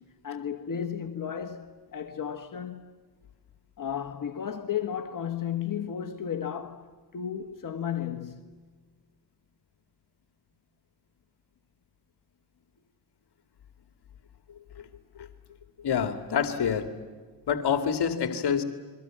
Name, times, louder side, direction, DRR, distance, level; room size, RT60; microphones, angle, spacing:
voice 1, 0.0-2.9 3.8-8.4, left 8 dB, 50° left, 1.5 m, -34 dB
voice 2, 15.8-16.9 17.5-18.6, left 7 dB, 65° left, 2.3 m, -27 dB
29.5 x 23.0 x 7.6 m
cardioid pair, 85°, 43 cm